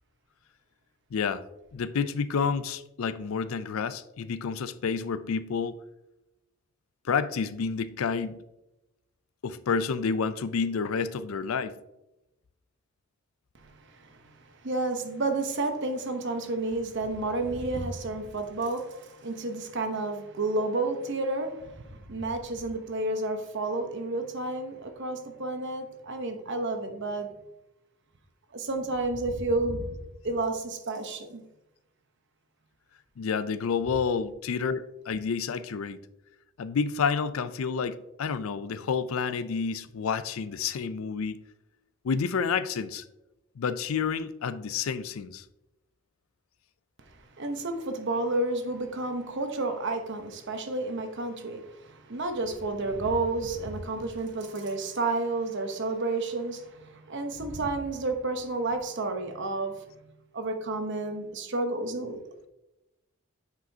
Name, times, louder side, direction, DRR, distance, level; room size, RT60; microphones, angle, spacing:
voice 1, 1.1-1.4 1.7-5.8 7.0-8.4 9.4-11.7 33.2-36.0 36.6-41.4 42.0-43.0 43.6-45.4, left 5 dB, 75° left, 0.4 m, -29 dB
voice 2, 13.6-27.3 28.5-31.4 47.1-62.2, right 2 dB, 60° right, 0.9 m, -31 dB
9.2 x 5.0 x 2.8 m
head